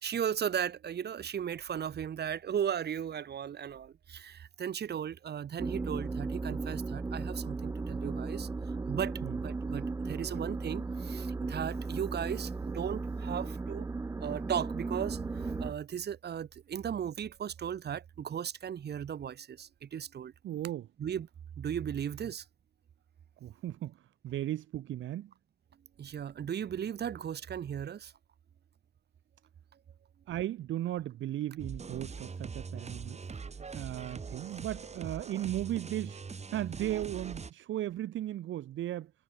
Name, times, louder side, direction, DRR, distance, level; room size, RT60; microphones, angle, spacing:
voice 1, 0.0-8.5 8.9-9.1 9.4-13.9 14.2-15.2 15.6-20.3 21.0-21.3 21.6-22.4 26.0-28.1, right 8 dB, 55° right, 3.0 m, -36 dB
sound 1, 5.6-15.7, right 3 dB, 15° right, 0.4 m, -36 dB
voice 2, 20.4-20.9 23.4-25.3 30.3-33.2 33.7-36.2 36.5-39.1, right 13 dB, 75° right, 1.8 m, -36 dB
sound 2, 31.6-37.5, right 5 dB, 35° right, 5.8 m, -42 dB
cardioid pair, 90°, 20 cm